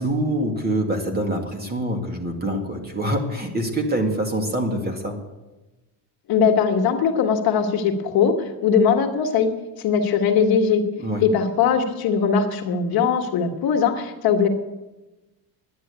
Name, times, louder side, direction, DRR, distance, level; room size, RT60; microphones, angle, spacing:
voice 1, 0.0-5.2 11.0-11.2, right 1 dB, 20° right, 3 dB, 2.1 m, -25 dB
voice 2, 6.3-9.5 9.8-10.8 11.2-14.5, left 6 dB, 55° left, 4 dB, 1.7 m, -20 dB
11.0 x 9.8 x 8.2 m, 1.1 s
cardioid pair, 135°, 44 cm